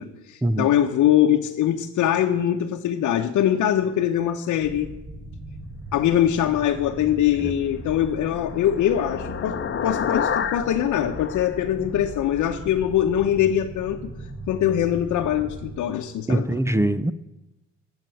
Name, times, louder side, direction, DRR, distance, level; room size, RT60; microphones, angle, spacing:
voice 1, 0.0-4.9 5.9-14.1 14.5-16.5, left 11 dB, 75° left, 1.0 m, -22 dB
sound 1, 4.6-15.8, right 1 dB, 25° right, 1.6 m, -39 dB
sound 2, 7.7-12.4, left 8 dB, 40° left, 0.9 m, -30 dB
voice 2, 16.3-17.1, right 1 dB, 10° right, 0.6 m, -22 dB
13.5 x 7.6 x 9.3 m
cardioid pair, 90°, 30 cm